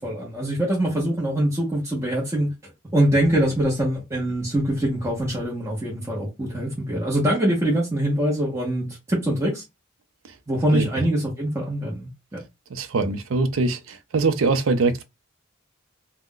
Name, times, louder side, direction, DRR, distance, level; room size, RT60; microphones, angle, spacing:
voice 1, 0.0-2.5 2.9-9.6 10.5-12.4, right 1 dB, 15° right, 0.8 m, -23 dB
voice 2, 12.7-15.0, right 3 dB, 85° right, 0.5 m, -23 dB
2.3 x 2.1 x 3.7 m
head